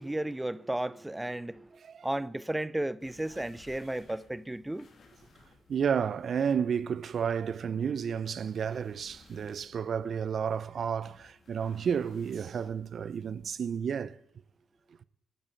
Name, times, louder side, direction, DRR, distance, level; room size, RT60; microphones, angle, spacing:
voice 1, 0.0-4.9, right 1 dB, 15° right, 0.7 m, -34 dB
sound 1, 3.0-13.4, left 3 dB, 60° left, 3.1 m, -60 dB
voice 2, 5.7-14.2, right 7 dB, 60° right, 0.7 m, -31 dB
12.5 x 8.8 x 9.1 m
hypercardioid pair, 40°, 0 cm